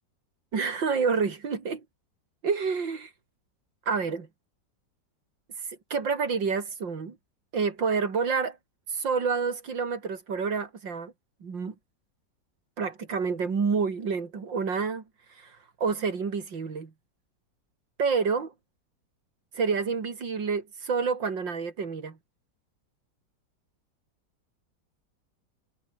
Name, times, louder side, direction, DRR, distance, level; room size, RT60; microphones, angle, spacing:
voice 1, 0.5-1.8 2.4-3.1 3.9-4.3 5.9-7.2 7.5-8.6 8.9-11.1 11.4-11.8 12.8-15.0 15.4-16.9 18.0-18.5 19.5-22.2, right 5 dB, 85° right, 3.5 m, -28 dB
omnidirectional pair, 2.0 m